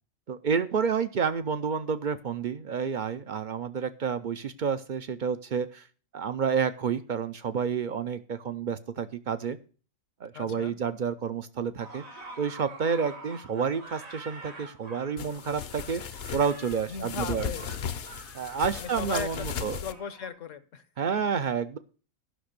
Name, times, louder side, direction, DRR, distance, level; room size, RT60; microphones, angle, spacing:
voice 1, 0.3-5.9 6.1-9.6 10.2-12.0 12.4-17.5 18.3-19.8 21.0-21.8, right 6 dB, 55° right, 12 dB, 0.5 m, -29 dB
voice 2, 10.3-10.8 16.9-17.8 18.8-20.8, left 6 dB, 70° left, 13 dB, 1.2 m, -38 dB
sound 1, 11.8-20.3, right 2 dB, 85° right, 2.9 m, -47 dB
sound 2, 15.2-19.9, left 7 dB, 55° left, 0.8 m, -37 dB
11.0 x 6.0 x 6.5 m, 0.39 s
omnidirectional pair, 1.4 m